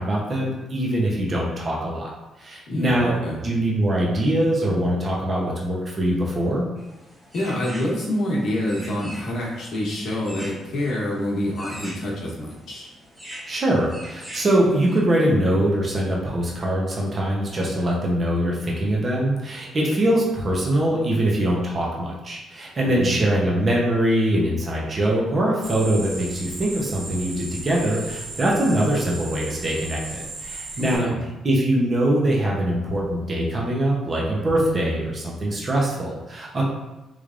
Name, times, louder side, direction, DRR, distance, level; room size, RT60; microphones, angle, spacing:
voice 1, 0.0-2.1 2.4-6.6 13.5-31.1 31.4-36.6, right 1 dB, 35° right, -3 dB, 0.9 m, -23 dB
voice 2, 2.7-3.4 7.3-12.9 22.8-23.2 30.8-31.2, left 1 dB, 70° left, -4 dB, 1.0 m, -27 dB
sound 1, 6.8-15.0, equal, ahead, 1.5 m, -43 dB
sound 2, 25.6-31.0, right 3 dB, 75° right, 0.8 m, -36 dB
3.3 x 3.2 x 2.5 m, 1.0 s
cardioid pair, 90°, 0 cm